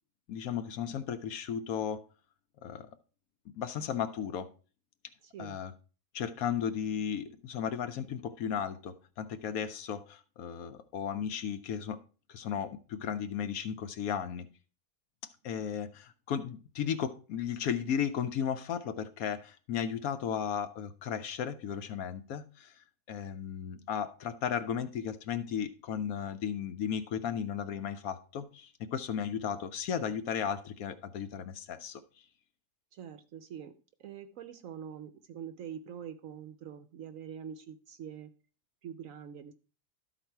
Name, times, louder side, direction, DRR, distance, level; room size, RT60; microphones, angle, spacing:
voice 1, 0.3-2.1 2.6-2.9 3.5-4.5 5.4-5.7 6.1-12.0 12.3-14.5 15.4-22.8 23.1-32.0, left 8 dB, 70° left, 10 dB, 1.0 m, -35 dB
voice 2, 5.2-5.6 32.9-38.3 38.8-39.5, right 8 dB, 65° right, 10 dB, 0.9 m, -45 dB
12.5 x 4.2 x 4.4 m, 0.35 s
omnidirectional pair, 1.8 m